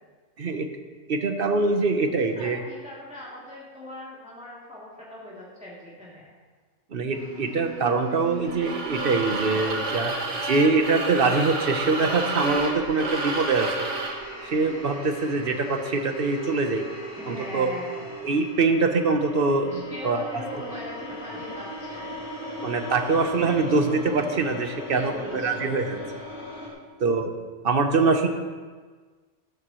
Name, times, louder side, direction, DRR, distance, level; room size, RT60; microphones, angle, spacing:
voice 1, 0.4-0.7 1.1-2.6 6.9-13.7 14.4-16.9 17.3-17.7 18.2-20.2 22.6-26.0 27.0-27.3 27.6-28.3, right 3 dB, 55° right, 6 dB, 1.0 m, -24 dB
voice 2, 2.0-6.3 17.2-18.3 19.7-22.1 24.9-25.9, equal, 5° right, -8 dB, 2.7 m, -40 dB
sound 1, 7.1-26.7, equal, 65° left, 3.8 m, -39 dB
sound 2, 8.5-14.2, right 2 dB, 85° right, 1.7 m, -30 dB
13.0 x 12.0 x 3.0 m, 1.4 s
omnidirectional pair, 1.2 m